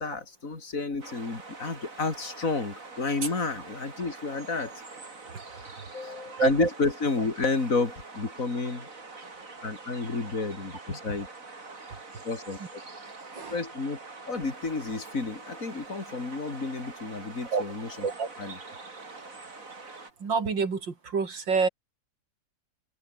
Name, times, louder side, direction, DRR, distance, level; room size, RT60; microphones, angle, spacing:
voice 1, 0.0-4.7 5.9-8.9 9.6-11.3 12.2-12.8 13.5-14.0 14.3-18.1 18.4-18.6, left 3 dB, 45° left, 4.1 m, -31 dB
sound 1, 1.0-20.1, right 3 dB, 45° right, 3.7 m, -45 dB
voice 2, 6.3-6.7 13.3-13.5 17.5-17.6 18.0-18.3 20.2-21.7, right 5 dB, 85° right, 3.5 m, -27 dB
omnidirectional pair, 2.0 m